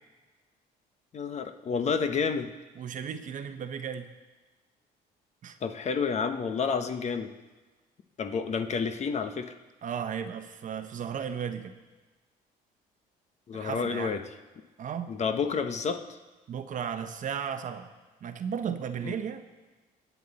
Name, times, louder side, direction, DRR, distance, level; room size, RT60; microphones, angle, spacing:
voice 1, 1.1-2.5 5.6-7.3 8.2-9.5 13.5-14.2 15.1-16.0 19.0-19.1, left 5 dB, 40° left, 8 dB, 1.0 m, -29 dB
voice 2, 2.8-4.1 5.4-5.6 9.8-11.7 13.5-14.2 14.8-15.1 16.5-17.9 18.2-19.4, right 7 dB, 50° right, 8 dB, 1.0 m, -35 dB
21.5 x 8.3 x 4.2 m, 1.2 s
cardioid pair, 110°, 17 cm